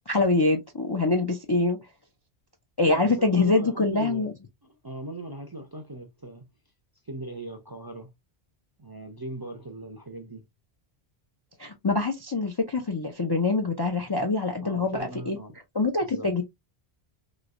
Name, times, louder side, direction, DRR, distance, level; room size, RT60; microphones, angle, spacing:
voice 1, 0.1-1.8 2.8-4.3 11.6-15.4 15.8-16.4, left 3 dB, 35° left, 0.4 m, -24 dB
voice 2, 2.9-4.3 4.8-6.5 7.1-8.1 8.8-10.4 14.6-15.6 16.0-16.4, right 1 dB, 30° right, 0.5 m, -39 dB
3.1 x 3.0 x 2.4 m
omnidirectional pair, 1.1 m